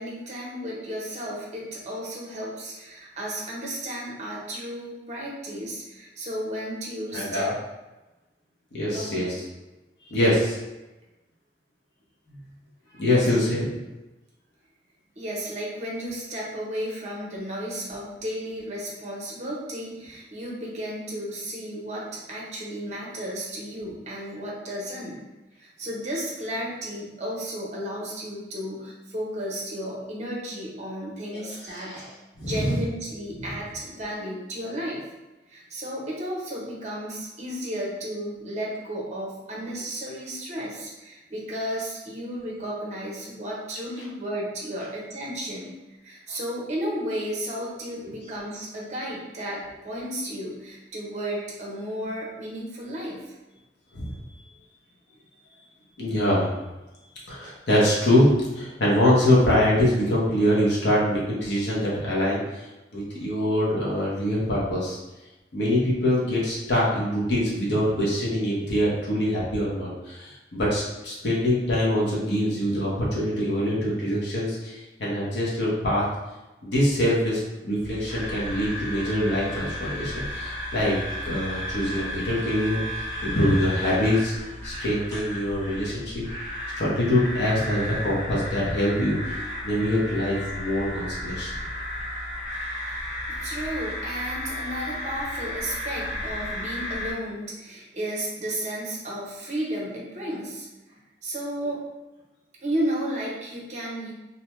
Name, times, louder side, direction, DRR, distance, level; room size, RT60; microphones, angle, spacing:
voice 1, 0.0-7.5 8.9-9.3 13.0-13.3 15.2-25.2 25.6-32.0 32.4-35.1 35.5-45.8 46.0-53.3 93.4-101.8 102.6-104.1, equal, 40° right, -3 dB, 0.6 m, -33 dB
voice 2, 7.1-7.5 8.7-9.3 10.1-10.6 13.0-13.8 31.3-32.1 32.4-32.8 48.0-48.1 53.9-54.2 56.0-56.5 57.3-62.6 62.9-65.0 65.5-76.0 76.6-81.0 81.2-82.8 83.2-86.2 86.8-89.4 89.6-91.5, left 1 dB, 70° left, -6 dB, 0.8 m, -24 dB
sound 1, 77.8-97.1, left 1 dB, 20° left, 0.9 m, -34 dB
2.6 x 2.2 x 2.9 m, 1.1 s
head